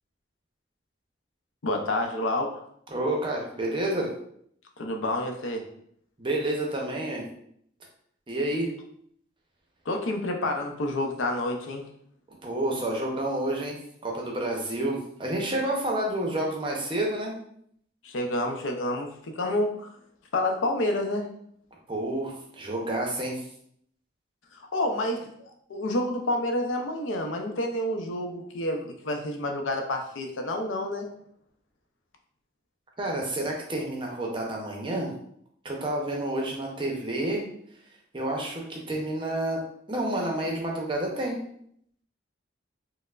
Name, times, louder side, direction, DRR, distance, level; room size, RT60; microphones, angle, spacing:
voice 1, 1.6-2.6 4.8-5.6 9.9-11.8 18.0-19.9 20.3-21.2 24.7-25.3 25.7-31.1, left 1 dB, 85° left, 4 dB, 0.5 m, -28 dB
voice 2, 2.9-4.1 6.2-7.2 8.3-8.7 12.4-17.3 21.9-23.4 33.0-35.1 35.6-37.4 38.1-39.6 39.9-41.4, right 1 dB, 25° right, 0 dB, 0.5 m, -29 dB
4.3 x 2.0 x 2.3 m, 0.68 s
head